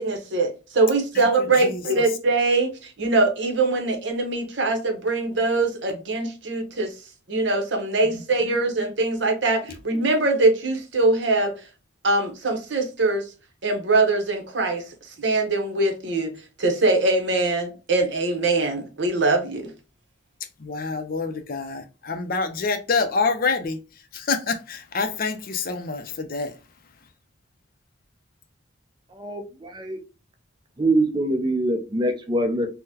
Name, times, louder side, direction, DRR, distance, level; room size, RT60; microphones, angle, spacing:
voice 1, 0.0-6.9 7.3-11.5 12.0-13.3 13.6-14.8 15.2-16.3 16.6-19.7, right 2 dB, 60° right, 0.8 m, -22 dB
voice 2, 20.6-23.8 24.1-26.5, left 4 dB, 45° left, 0.5 m, -26 dB
voice 3, 29.1-30.0 30.8-32.7, right 1 dB, 20° right, 0.5 m, -24 dB
3.8 x 2.1 x 2.7 m
head